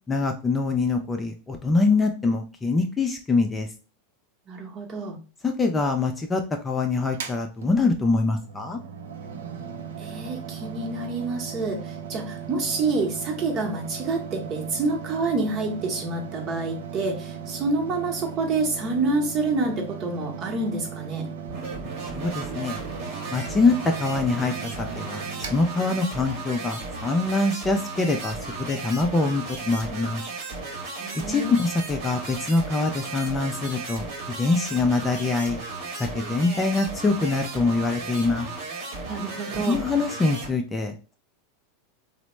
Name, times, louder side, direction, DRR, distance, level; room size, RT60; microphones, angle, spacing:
voice 1, 0.1-3.7 5.4-8.8 22.1-22.8 23.3-30.2 31.3-34.1 34.4-35.6 36.0-38.5 39.7-41.1, left 3 dB, 15° left, 4 dB, 0.4 m, -24 dB
voice 2, 4.5-5.2 10.0-21.3 31.0-31.5 39.1-39.8, right 3 dB, 40° right, 1 dB, 0.9 m, -28 dB
Mechanical fan, 7.1-26.5, right 7 dB, 85° right, 0.5 m, -38 dB
sound 1, 21.5-40.5, right 3 dB, 55° right, 1.0 m, -35 dB
3.0 x 2.1 x 3.0 m, 0.33 s
hypercardioid pair, 115°, 0 cm